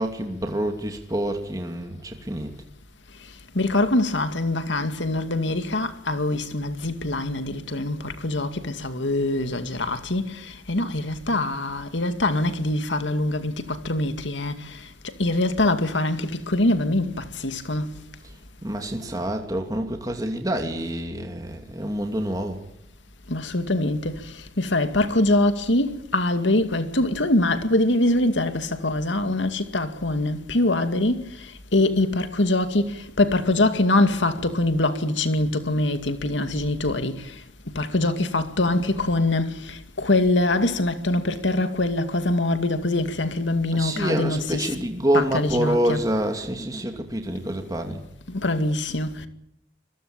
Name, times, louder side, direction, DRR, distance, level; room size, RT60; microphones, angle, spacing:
voice 1, 0.0-2.5 18.6-22.6 43.7-48.0, right 1 dB, 20° right, 2.5 m, -27 dB
voice 2, 3.5-14.9 15.2-17.9 23.3-37.4 37.7-44.7 45.1-46.0 48.3-49.3, left 2 dB, 80° left, 2.2 m, -24 dB
24.5 x 22.0 x 8.9 m
head